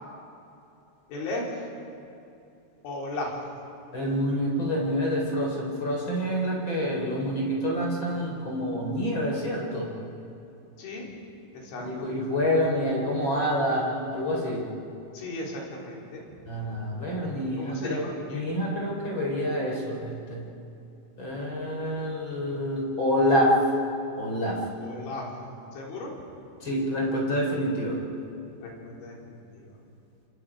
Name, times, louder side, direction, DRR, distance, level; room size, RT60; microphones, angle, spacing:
voice 1, 1.1-1.5 2.8-3.3 10.8-11.1 11.5-12.1 15.1-16.2 17.6-18.4 24.8-25.3 25.7-26.1 28.6-29.8, left 2 dB, 70° left, -2 dB, 6.1 m, -36 dB
voice 2, 3.9-9.9 11.8-14.6 16.5-18.0 18.3-20.4 21.2-23.5 24.2-24.6 26.6-28.0, equal, 25° left, -1 dB, 3.7 m, -27 dB
27.5 x 27.5 x 5.0 m, 2.7 s
omnidirectional pair, 5.7 m